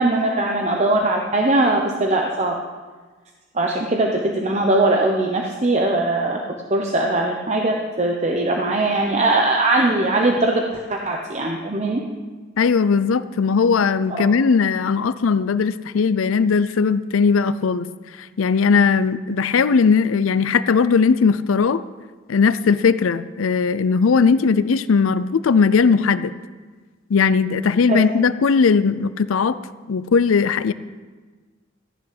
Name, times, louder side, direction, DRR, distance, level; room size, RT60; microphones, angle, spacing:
voice 1, 0.0-2.6 3.5-6.4 6.7-12.0 14.2-14.3 27.9-28.2, right 2 dB, 35° right, 1 dB, 0.9 m, -20 dB
voice 2, 12.6-17.9 18.2-21.8 22.3-26.3 27.1-29.6 29.9-30.7, left 5 dB, 90° left, 14 dB, 0.5 m, -18 dB
14.0 x 6.2 x 8.7 m, 1.4 s
head